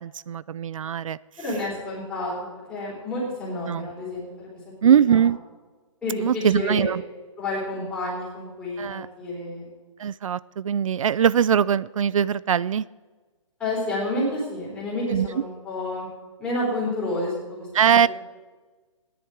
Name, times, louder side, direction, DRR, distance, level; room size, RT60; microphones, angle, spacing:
voice 1, 0.0-1.2 3.7-3.9 4.8-5.4 6.2-7.0 8.8-9.1 10.0-12.9 15.1-15.3 17.7-18.1, right 8 dB, 85° right, 20 dB, 0.4 m, -21 dB
voice 2, 1.4-2.3 2.7-4.5 4.8-5.2 6.0-6.9 7.4-9.7 13.6-16.1 16.4-17.7 18.0-18.1, left 1 dB, 5° left, -7 dB, 3.3 m, -29 dB
16.0 x 10.5 x 4.6 m, 1.3 s
hypercardioid pair, 175°, 17 cm